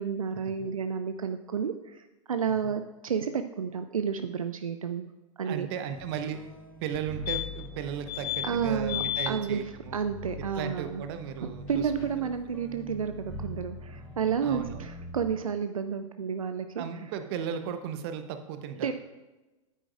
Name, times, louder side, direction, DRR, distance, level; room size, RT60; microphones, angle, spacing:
voice 1, 0.0-5.1 5.4-5.7 8.4-9.6 9.9-11.1 11.4-16.8 18.8-18.9, right 6 dB, 80° right, 9 dB, 0.4 m, -31 dB
voice 2, 5.4-6.4 6.8-10.1 10.4-11.9 14.4-14.9 16.8-18.9, right 8 dB, 45° right, 9 dB, 0.8 m, -36 dB
sound 1, 5.9-15.4, left 2 dB, 5° right, 2.9 m, -43 dB
sound 2, 6.9-7.0 7.3-7.7 8.1-8.5 8.9-9.3 11.7-11.8 12.0-12.1, left 13 dB, 45° left, 0.4 m, -32 dB
9.9 x 8.5 x 2.4 m, 1.1 s
figure-of-eight pair, 95°, 17 cm